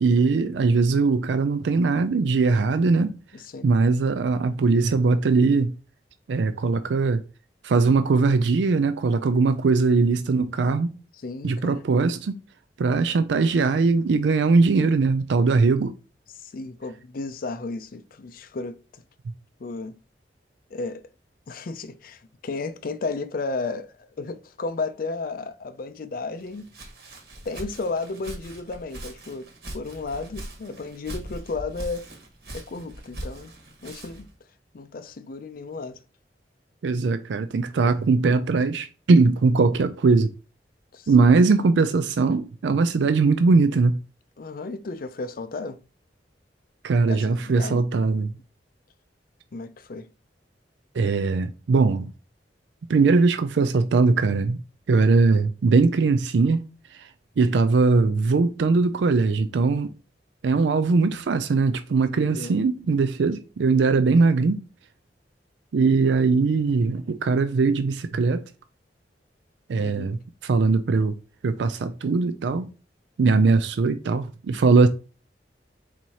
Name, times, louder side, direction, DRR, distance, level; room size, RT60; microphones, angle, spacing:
voice 1, 0.0-3.1 3.6-5.7 6.3-7.2 7.6-10.9 11.4-12.4 12.8-15.9 36.8-40.3 41.1-44.0 46.8-48.3 50.9-52.1 52.9-54.6 54.9-56.6 56.9-57.1 57.4-59.9 60.4-64.6 65.7-68.4 69.7-71.1 71.4-72.7 73.2-74.9, right 4 dB, 90° right, 0.4 m, -20 dB
voice 2, 3.3-3.7 11.1-11.8 16.3-18.8 19.6-20.0 20.7-21.0 21.5-26.7 27.4-32.1 32.5-33.5 33.8-34.3 34.7-36.0 40.9-41.3 44.4-45.8 47.1-47.8 49.5-50.1 62.3-62.6 69.8-70.2, left 3 dB, 55° left, 0.5 m, -33 dB
Walk footsteps, 26.4-34.3, right 1 dB, 65° right, 1.6 m, -40 dB
4.6 x 4.1 x 2.8 m
head